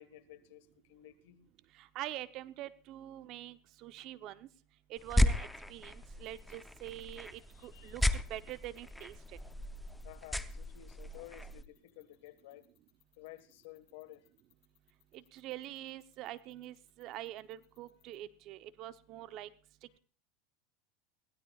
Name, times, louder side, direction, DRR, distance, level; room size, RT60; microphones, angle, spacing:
voice 1, 0.0-1.4 7.5-7.9 10.0-12.7 13.2-14.3 17.2-17.3, left 15 dB, 70° left, 12 dB, 1.5 m, -53 dB
voice 2, 1.8-4.5 4.9-8.0 8.3-9.1 15.1-19.5, right 14 dB, 50° right, 13 dB, 0.8 m, -45 dB
sound 1, 5.0-11.6, left 1 dB, 5° left, 0.7 m, -35 dB
sound 2, 6.2-18.2, left 14 dB, 45° left, 7.3 m, -70 dB
21.5 x 16.0 x 2.4 m, 0.40 s
supercardioid pair, 115°, 0 cm